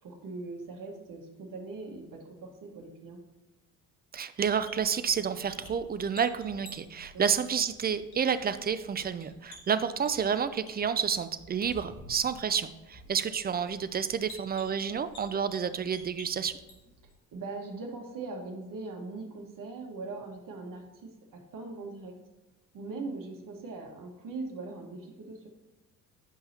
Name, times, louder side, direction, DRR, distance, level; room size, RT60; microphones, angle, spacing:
voice 1, 0.0-3.2 7.1-7.2 17.3-22.2 22.7-25.5, right 3 dB, 50° right, 2 dB, 1.6 m, -41 dB
voice 2, 4.1-16.6, right 7 dB, 25° right, 12 dB, 0.4 m, -30 dB
sound 1, 4.4-17.1, equal, 60° left, 2.2 m, -52 dB
9.9 x 5.4 x 2.9 m, 1.1 s
hypercardioid pair, 50°, 43 cm